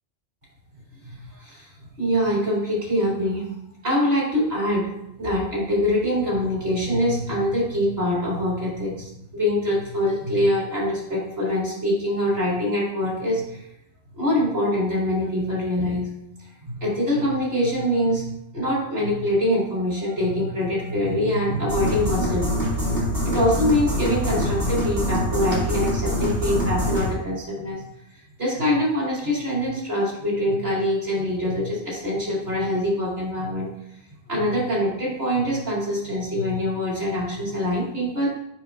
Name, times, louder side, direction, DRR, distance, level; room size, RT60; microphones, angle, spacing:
voice 1, 1.0-1.7 2.0-3.5 3.8-4.9 5.2-13.6 14.1-16.1 16.6-18.3 18.5-23.0 23.2-27.8 28.4-33.7 34.3-38.3, left 1 dB, 65° right, -5 dB, 2.8 m, -24 dB
sound 1, 21.7-27.1, equal, 90° right, 2.5 m, -24 dB
7.8 x 5.5 x 2.4 m, 0.81 s
omnidirectional pair, 1.1 m